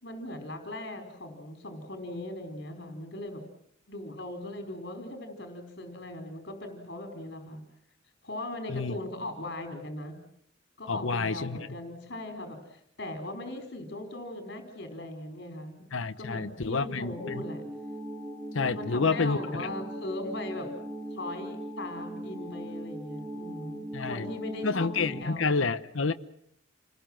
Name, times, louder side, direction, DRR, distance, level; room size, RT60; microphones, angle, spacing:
voice 1, 0.0-3.4 3.9-7.6 8.2-10.2 10.8-15.8 16.2-17.6 18.7-20.7 21.1-25.6, left 1 dB, 55° left, 4.7 m, -39 dB
voice 2, 10.9-11.6 15.9-17.4 18.5-19.7 23.9-24.3 24.6-26.1, left 4 dB, 80° left, 0.9 m, -29 dB
sound 1, 17.2-25.2, right 1 dB, 5° right, 3.3 m, -39 dB
29.0 x 20.5 x 7.6 m
head